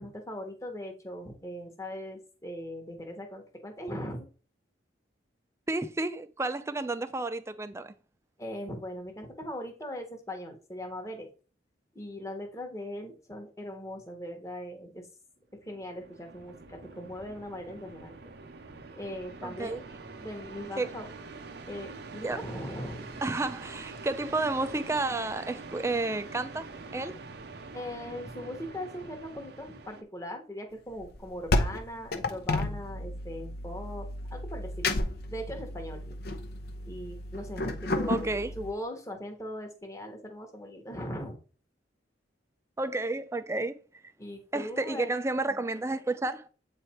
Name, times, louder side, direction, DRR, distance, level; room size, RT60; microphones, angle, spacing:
voice 1, 0.0-4.3 8.4-11.3 11.9-15.1 15.6-18.2 18.9-19.8 20.2-21.1 21.7-23.2 27.7-34.9 35.3-36.2 36.9-41.4 44.2-45.1, left 1 dB, 15° left, 1.1 m, -40 dB
voice 2, 5.7-7.9 19.4-19.8 20.8-20.9 22.2-22.4 23.2-26.6 26.9-27.2 38.1-38.5 42.8-43.7 44.5-46.5, right 2 dB, 15° right, 0.4 m, -31 dB
sound 1, 15.6-30.0, right 3 dB, 60° right, 0.7 m, -45 dB
sound 2, 31.0-38.7, left 2 dB, 55° left, 0.7 m, -32 dB
7.9 x 3.3 x 4.3 m
head